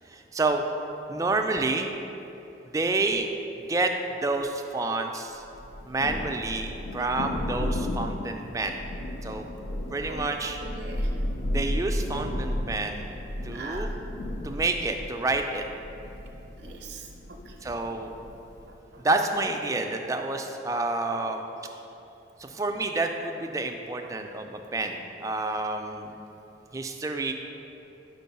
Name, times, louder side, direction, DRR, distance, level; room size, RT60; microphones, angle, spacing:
voice 1, 0.1-0.6 1.1-1.9 2.7-3.3 3.6-3.9 4.2-5.4 5.9-8.8 9.2-9.5 9.9-10.6 11.5-13.1 13.4-13.9 14.4-15.6 17.6-18.1 19.0-21.4 22.4-26.1 26.7-27.3, right 2 dB, 20° right, 4 dB, 0.3 m, -29 dB
Thunder, 5.5-18.7, left 1 dB, 80° left, 0.4 m, -34 dB
voice 2, 10.6-11.1 13.5-14.0 16.6-17.7 18.7-19.0, right 2 dB, 65° right, 1 dB, 0.6 m, -42 dB
5.0 x 4.5 x 5.3 m, 2.9 s
head